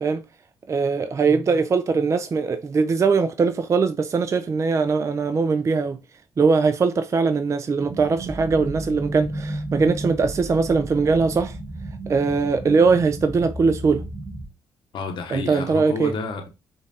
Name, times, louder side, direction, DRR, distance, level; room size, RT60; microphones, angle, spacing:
voice 1, 0.7-6.0 6.4-11.6 12.1-14.0 15.3-16.1, right 4 dB, 35° right, 0.4 m, -21 dB
sound 1, 7.8-14.5, right 1 dB, 10° right, 1.0 m, -33 dB
voice 2, 14.9-16.5, left 4 dB, 65° left, 0.8 m, -30 dB
5.1 x 2.4 x 2.7 m
supercardioid pair, 70°, 9 cm